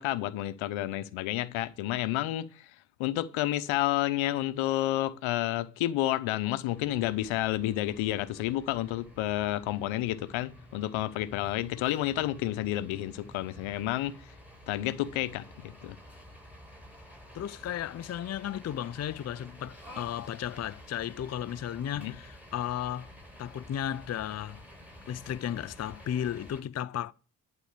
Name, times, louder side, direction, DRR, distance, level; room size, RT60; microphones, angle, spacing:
voice 1, 0.0-2.7 3.0-14.3 14.7-16.0 21.9-22.1, left 15 dB, 85° left, 0.9 m, -30 dB
sound 1, 6.7-26.6, equal, 5° right, 6.4 m, -51 dB
voice 2, 17.3-23.1 23.4-24.6 25.1-27.1, left 10 dB, 35° left, 0.5 m, -34 dB
11.5 x 4.3 x 8.1 m
supercardioid pair, 60°, 47 cm